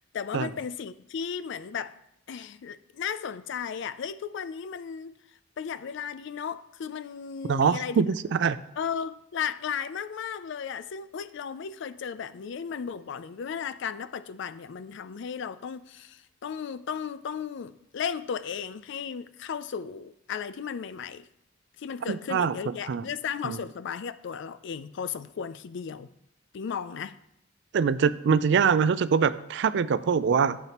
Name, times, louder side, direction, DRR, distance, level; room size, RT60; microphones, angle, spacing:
voice 1, 0.0-2.0 2.3-5.2 5.6-8.0 8.8-21.3 21.8-26.1 26.5-27.2, left 7 dB, 65° left, 0.4 m, -35 dB
voice 2, 7.5-8.6 22.1-23.0 23.4-23.6 27.7-30.6, right 6 dB, 65° right, 0.4 m, -24 dB
12.0 x 7.4 x 3.0 m
head